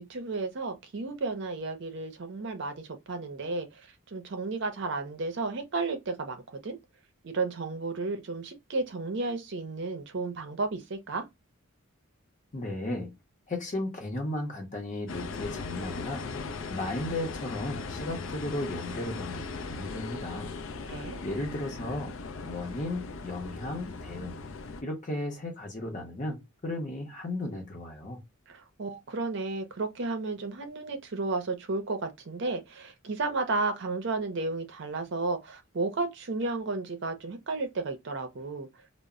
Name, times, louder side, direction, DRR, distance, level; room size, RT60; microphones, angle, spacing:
voice 1, 0.0-3.8 4.1-6.8 7.2-11.2 20.9-21.2 28.5-38.7, right 3 dB, 55° right, 0.5 m, -33 dB
voice 2, 12.5-13.2 13.5-16.3 16.7-20.5 20.9-22.2 22.4-24.4 24.8-28.2, left 1 dB, 35° left, 0.7 m, -35 dB
sound 1, 15.1-24.8, left 4 dB, 65° left, 0.4 m, -38 dB
2.0 x 2.0 x 3.5 m
head